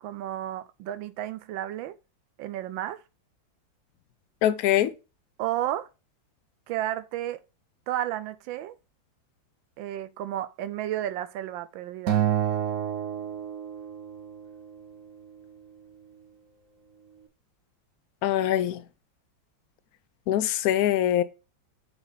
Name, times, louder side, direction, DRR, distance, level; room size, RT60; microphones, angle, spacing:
voice 1, 0.0-2.0 2.4-3.0 5.4-5.9 6.7-7.4 7.9-8.7 9.8-12.2, right 12 dB, 85° right, 1.4 m, -32 dB
voice 2, 4.4-4.9 18.2-18.8 20.3-21.2, left 12 dB, 80° left, 0.8 m, -23 dB
Acoustic guitar, 12.1-14.5, right 10 dB, 60° right, 0.9 m, -28 dB
8.1 x 3.5 x 4.0 m
omnidirectional pair, 2.1 m